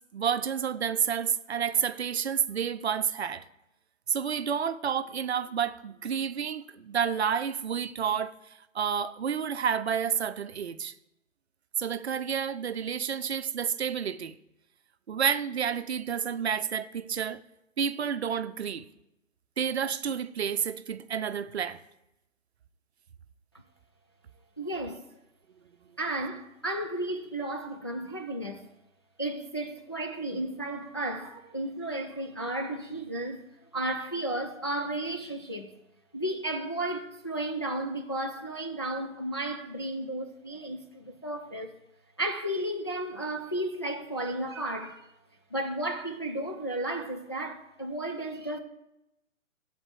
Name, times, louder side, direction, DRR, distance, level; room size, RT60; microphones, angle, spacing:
voice 1, 0.1-3.4 4.1-8.3 8.7-10.9 11.8-14.4 15.1-17.4 17.8-18.9 19.6-21.8, right 7 dB, 55° right, 0.7 m, -30 dB
voice 2, 24.6-25.0 26.0-28.7 29.2-33.4 33.7-35.7 36.1-41.8 42.2-45.1 45.5-48.6, right 1 dB, 20° left, 0.4 m, -33 dB
12.5 x 4.2 x 8.1 m
figure-of-eight pair, 135°, 39 cm